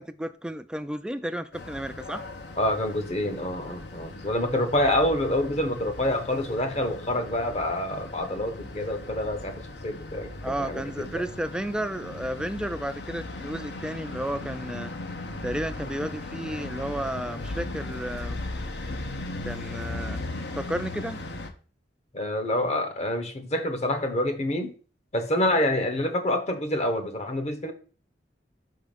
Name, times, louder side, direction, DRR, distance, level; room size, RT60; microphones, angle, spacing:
voice 1, 0.0-2.2 10.4-14.9 15.4-18.4 19.4-21.2, right 1 dB, 5° right, 0.3 m, -33 dB
sound 1, 1.5-21.5, left 2 dB, 65° left, 0.7 m, -37 dB
voice 2, 2.6-10.3 10.6-11.2 22.1-24.7 25.1-27.7, left 1 dB, 40° left, 0.9 m, -27 dB
5.6 x 3.8 x 5.2 m
head